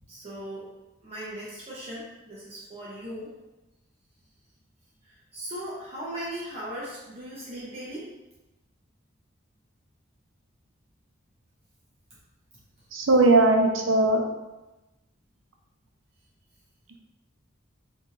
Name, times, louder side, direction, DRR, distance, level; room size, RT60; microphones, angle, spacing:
voice 1, 0.1-0.7 1.0-3.3 5.0-8.1, equal, 30° right, -7 dB, 0.7 m, -38 dB
voice 2, 12.9-14.2, right 2 dB, 90° right, 2 dB, 0.6 m, -19 dB
4.7 x 2.8 x 2.4 m, 1.0 s
head